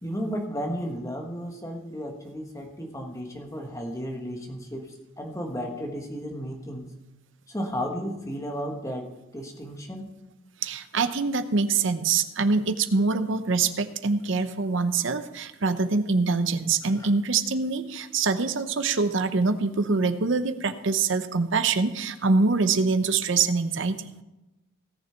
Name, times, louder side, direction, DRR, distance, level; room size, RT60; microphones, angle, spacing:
voice 1, 0.0-4.9 5.2-6.9 7.5-9.1 9.3-10.1 17.0-17.1, equal, 15° left, 2 dB, 1.4 m, -33 dB
voice 2, 10.6-24.2, right 4 dB, 60° right, 11 dB, 0.7 m, -24 dB
17.5 x 6.8 x 4.4 m, 0.99 s
head